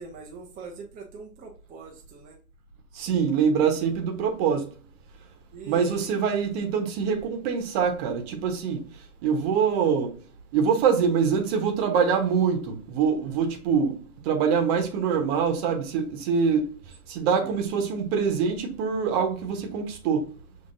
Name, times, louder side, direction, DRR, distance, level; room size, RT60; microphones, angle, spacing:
voice 1, 0.0-2.4 5.5-6.1 9.4-9.6 17.2-17.5, right 5 dB, 20° right, 0.8 m, -42 dB
voice 2, 3.0-4.6 5.7-8.8 9.2-10.1 10.5-14.0 14.3-16.6 17.1-20.2, right 6 dB, 45° right, 1.2 m, -24 dB
5.9 x 3.4 x 2.6 m
hypercardioid pair, 115°, 46 cm